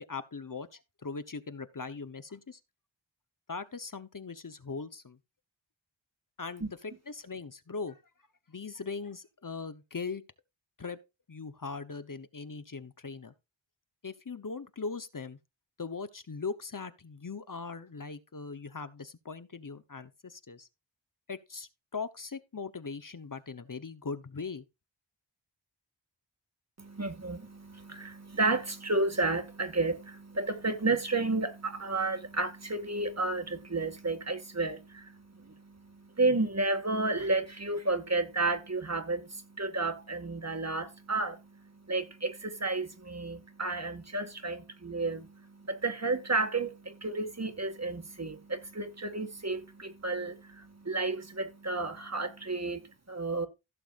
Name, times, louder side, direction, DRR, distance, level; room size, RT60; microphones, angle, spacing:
voice 1, 0.1-2.6 3.5-5.2 6.4-8.0 8.5-10.2 10.8-11.0 11.3-13.3 14.0-15.4 15.8-20.7 21.3-24.6, left 4 dB, 45° left, 1.0 m, -40 dB
voice 2, 26.8-53.5, right 3 dB, 35° right, 1.9 m, -32 dB
16.0 x 6.9 x 2.5 m
wide cardioid pair, 65°, 46 cm